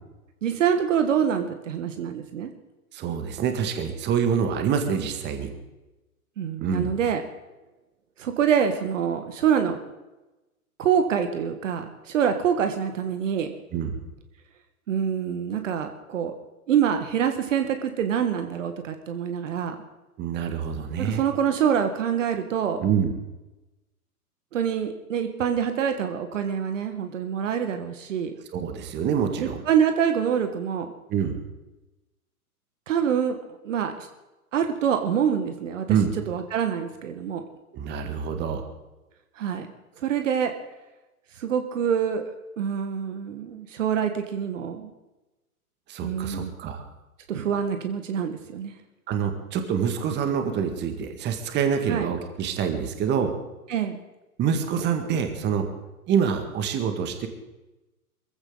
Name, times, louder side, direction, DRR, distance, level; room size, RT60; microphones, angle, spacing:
voice 1, 0.4-2.5 6.4-7.2 8.2-9.8 10.8-13.5 14.9-16.3 16.7-19.8 21.0-22.8 24.5-28.3 29.4-30.9 32.9-34.1 34.5-36.0 36.3-37.4 39.4-39.7 40.0-40.5 41.4-42.3 42.6-44.9 46.0-46.5 47.3-48.7 51.9-52.0 53.7-54.0, right 8 dB, 55° right, 7 dB, 1.7 m, -25 dB
voice 2, 2.9-5.5 6.6-6.9 13.7-14.0 20.2-21.2 22.8-23.1 28.5-29.6 31.1-31.4 35.9-36.1 37.7-38.7 45.9-46.8 49.1-53.3 54.4-55.6 56.1-57.3, right 7 dB, 25° right, 6 dB, 2.0 m, -26 dB
22.5 x 15.5 x 4.0 m, 1.0 s
figure-of-eight pair, 115°, 45 cm